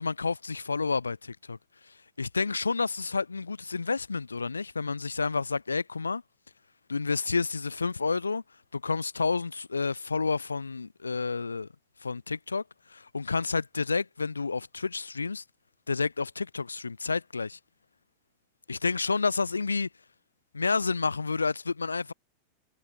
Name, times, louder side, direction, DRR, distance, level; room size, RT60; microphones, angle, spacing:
voice 1, 0.0-1.6 1.9-6.2 6.9-8.4 8.7-11.7 12.0-12.6 12.9-15.4 15.9-17.6 18.7-19.9 20.5-22.1, left 4 dB, 75° left, 0.7 m, -30 dB
figure-of-eight pair, 90°, 0 cm